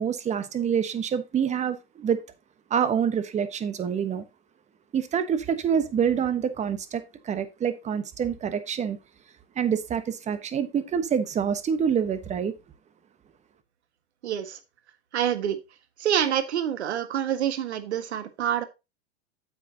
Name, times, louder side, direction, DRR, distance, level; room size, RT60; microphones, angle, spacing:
voice 1, 0.0-2.2 2.7-4.2 4.9-9.0 9.6-12.5, right 7 dB, 20° right, 1.1 m, -26 dB
voice 2, 14.2-14.6 15.1-15.6 16.0-18.6, right 10 dB, 85° right, 1.6 m, -26 dB
9.4 x 7.5 x 2.8 m
hypercardioid pair, 125°, 32 cm